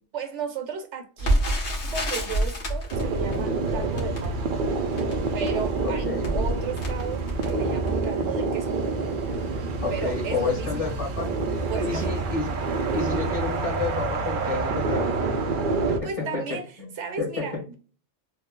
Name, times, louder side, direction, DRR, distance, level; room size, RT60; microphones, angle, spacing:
voice 1, 0.1-1.4 1.8-4.5 5.3-8.8 9.9-10.9 11.7-12.2 16.0-16.7 17.0-17.7, right 6 dB, 75° right, 1.1 m, -34 dB
Crackle, 1.2-8.2 8.8-8.9 9.2-9.4 10.0-10.2 10.5-10.6, right 1 dB, 65° left, 1.5 m, -29 dB
sound 1, 2.9-16.0, right 3 dB, 60° right, 0.6 m, -27 dB
voice 2, 5.8-6.3 9.8-12.5 12.9-15.2 15.9-16.9 17.2-17.5, left 4 dB, 30° left, 1.2 m, -30 dB
3.6 x 2.0 x 3.6 m
omnidirectional pair, 1.2 m